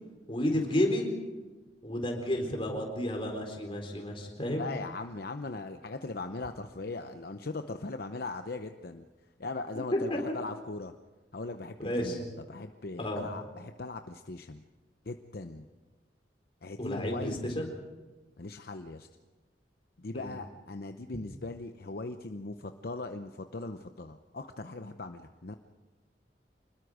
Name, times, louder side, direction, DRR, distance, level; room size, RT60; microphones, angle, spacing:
voice 1, 0.3-1.1 1.8-4.7 9.9-10.2 11.8-12.2 13.0-13.3 16.8-17.7 20.1-20.3, left 1 dB, 30° left, 2 dB, 4.1 m, -31 dB
voice 2, 4.5-9.0 9.4-10.9 11.3-14.6 15.0-15.7 16.6-17.6 18.4-19.1 20.0-25.6, left 3 dB, 60° left, 7 dB, 0.8 m, -39 dB
26.0 x 21.0 x 5.0 m, 1.3 s
head